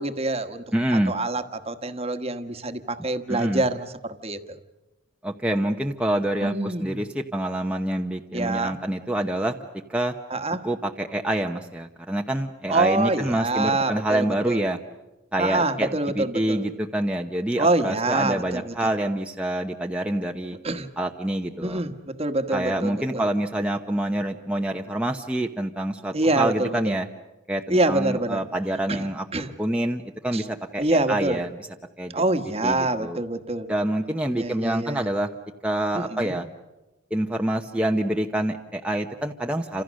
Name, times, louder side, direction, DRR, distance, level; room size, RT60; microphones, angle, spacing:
voice 1, 0.0-0.6 1.1-4.4 6.4-7.0 8.3-8.8 10.3-10.7 12.7-14.6 15.4-16.7 17.6-18.9 20.6-20.9 21.6-23.3 26.1-26.9 27.7-28.4 28.9-29.1 29.3-29.5 30.3-30.4 30.8-31.4 32.1-33.7 34.4-35.0 35.9-36.4, right 2 dB, 30° right, 8 dB, 1.4 m, -26 dB
voice 2, 0.7-1.2 3.3-3.6 5.2-9.5 9.9-10.1 10.6-14.8 15.3-20.6 21.0-21.8 22.5-27.1 27.5-29.2 29.6-31.5 32.0-32.1 32.6-33.2 33.7-35.3 35.6-36.5 37.1-39.8, right 1 dB, 5° right, 2 dB, 0.9 m, -26 dB
30.0 x 27.0 x 6.4 m, 1.0 s
head